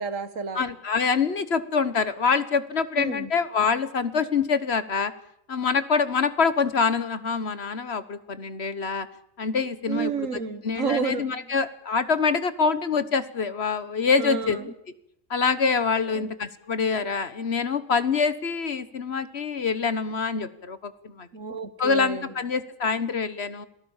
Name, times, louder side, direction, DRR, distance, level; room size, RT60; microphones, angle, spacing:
voice 1, 0.0-0.7 3.0-3.3 9.9-11.3 14.2-14.7 16.1-16.3 21.3-22.3, right 6 dB, 70° right, 12 dB, 1.8 m, -30 dB
voice 2, 0.5-5.1 5.5-9.1 9.4-10.3 10.6-14.6 15.3-21.3 21.8-23.7, left 5 dB, 55° left, 13 dB, 1.4 m, -25 dB
28.5 x 18.5 x 7.3 m, 0.76 s
omnidirectional pair, 1.4 m